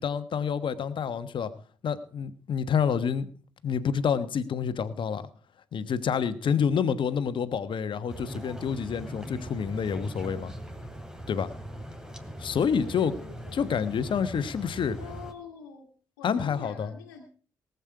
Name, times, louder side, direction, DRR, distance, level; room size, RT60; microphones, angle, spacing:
voice 1, 0.0-1.5 1.8-3.3 3.6-5.3 5.7-10.5 11.3-11.5 12.4-13.1 13.5-15.0 16.2-16.9, left 7 dB, 55° left, 12 dB, 1.2 m, -28 dB
sound 1, 8.1-15.3, right 1 dB, 5° right, 2.8 m, -41 dB
voice 2, 12.8-13.9 15.0-15.9 16.2-17.2, left 6 dB, 85° left, 1 dB, 1.6 m, -46 dB
19.0 x 8.3 x 4.7 m, 0.42 s
hypercardioid pair, 40°, 10 cm